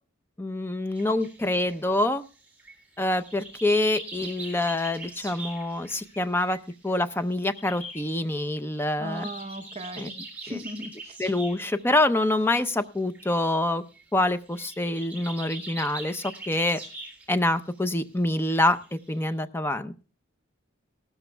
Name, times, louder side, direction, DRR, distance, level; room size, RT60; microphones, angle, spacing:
voice 1, 0.4-2.2 3.0-6.6 6.8-9.3 10.0-10.1 10.5-10.6 11.2-13.8 14.1-16.8 17.3-20.0, left 1 dB, 10° left, 11 dB, 0.5 m, -26 dB
sound 1, 0.9-7.0 7.3-17.5 17.8-18.0 18.5-19.3, right 2 dB, 10° right, 3.7 m, -43 dB
sound 2, 6.1-6.9 7.5-8.2 9.1-9.9, left 3 dB, 40° left, 3.2 m, -45 dB
voice 2, 9.0-10.1 10.4-11.2, right 1 dB, 30° right, 7 dB, 0.9 m, -37 dB
18.0 x 13.0 x 2.2 m, 0.35 s
head